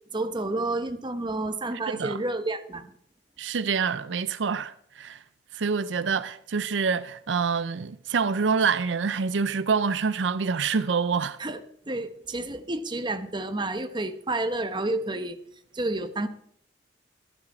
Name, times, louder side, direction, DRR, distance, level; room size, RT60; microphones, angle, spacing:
voice 1, 0.1-2.9 11.4-15.4 15.7-16.3, right 2 dB, 25° right, 1.1 m, -30 dB
voice 2, 1.9-2.2 3.4-5.2 5.5-11.4, right 5 dB, 75° right, 0.5 m, -26 dB
15.5 x 12.0 x 4.3 m
head